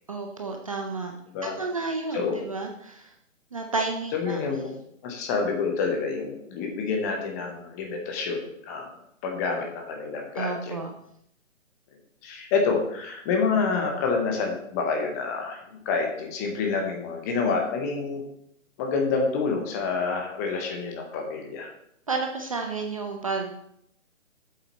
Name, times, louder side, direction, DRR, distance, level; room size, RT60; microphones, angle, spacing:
voice 1, 0.1-1.1 1.4-3.1 3.5-4.4 10.3-10.9 22.1-23.5, right 3 dB, 25° right, 3 dB, 0.5 m, -31 dB
voice 2, 4.1-4.7 5.0-8.9 9.2-10.7 12.2-18.2 18.8-21.7, left 4 dB, 15° left, 2 dB, 0.8 m, -28 dB
7.9 x 7.4 x 4.1 m, 0.74 s
figure-of-eight pair, 140°, 39 cm